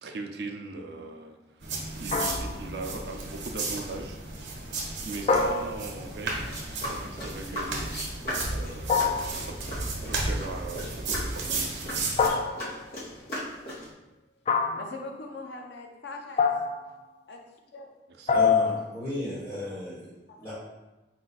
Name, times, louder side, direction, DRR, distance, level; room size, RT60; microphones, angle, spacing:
voice 1, 0.0-4.2 5.0-7.9 8.5-9.6 10.1-11.9 18.1-18.5, right 3 dB, 65° right, 3 dB, 0.5 m, -40 dB
sound 1, 1.6-12.3, right 3 dB, 90° right, 0.9 m, -34 dB
sound 2, 2.1-2.7 5.3-6.2 8.9-9.5 12.2-12.9 14.5-15.0 16.4-16.9 18.3-18.9, left 5 dB, 35° left, 0.3 m, -25 dB
sound 3, 6.4-13.9, equal, 60° left, 1.3 m, -39 dB
voice 2, 14.7-16.5 17.3-17.4 17.7-17.9 18.6-18.7 20.3-20.5, left 3 dB, 75° left, 2 dB, 0.6 m, -41 dB
voice 3, 18.3-20.5, left 1 dB, 15° left, -10 dB, 1.2 m, -35 dB
4.4 x 2.3 x 4.1 m, 1.1 s
head